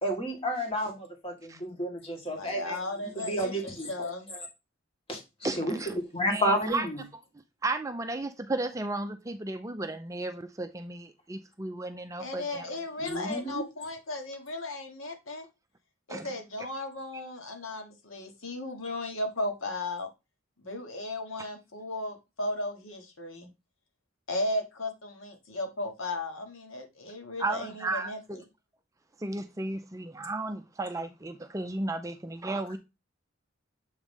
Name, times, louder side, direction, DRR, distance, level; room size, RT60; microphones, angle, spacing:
voice 1, 0.0-2.8 3.3-4.1 5.1-5.8 6.1-7.0 13.0-13.6, equal, 30° left, 1.8 m, -31 dB
voice 2, 2.3-4.3 12.2-15.5 16.1-20.1 20.6-23.5 24.3-28.4, left 2 dB, 85° left, 1.5 m, -35 dB
voice 3, 5.4-6.0 6.3-6.9 7.6-12.7 16.1-16.3 21.4-21.5 27.4-28.4 29.2-32.8, right 2 dB, 15° right, 0.4 m, -34 dB
7.2 x 3.2 x 5.2 m
head